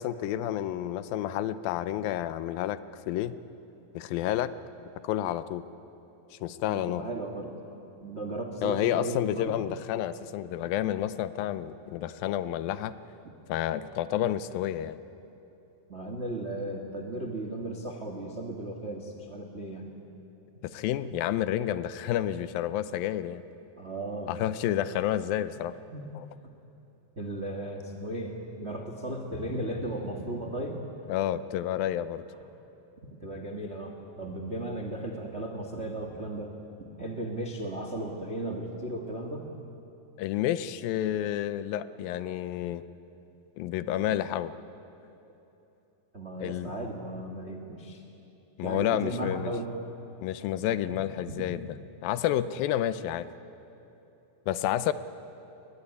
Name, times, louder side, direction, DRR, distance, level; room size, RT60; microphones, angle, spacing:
voice 1, 0.0-2.8 3.1-3.4 3.9-4.5 5.0-5.6 6.4-7.0 8.6-12.9 13.5-15.0 20.6-23.4 24.3-25.7 26.2-26.3 31.1-32.2 40.2-42.8 43.6-44.5 46.4-46.7 48.6-49.5 50.2-51.7 52.0-53.3 54.5-54.9, left 12 dB, 80° left, 14 dB, 2.4 m, -30 dB
voice 2, 6.7-7.6 8.0-9.6 15.9-19.9 23.8-24.4 25.9-26.1 27.2-30.8 33.0-36.5 37.0-39.4 46.1-48.0 48.6-49.7 50.9-51.5, right 1 dB, 45° right, 2 dB, 0.8 m, -36 dB
22.5 x 19.0 x 9.8 m, 3.0 s
omnidirectional pair, 4.2 m